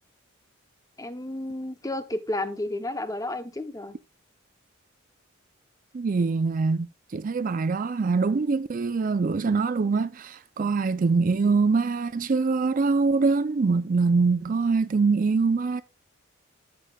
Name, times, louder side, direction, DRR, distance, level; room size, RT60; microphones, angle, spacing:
voice 1, 1.0-3.9, left 1 dB, 15° left, 0.8 m, -32 dB
voice 2, 5.9-6.9 7.1-15.8, right 4 dB, 40° right, 0.4 m, -24 dB
12.0 x 7.6 x 2.3 m
head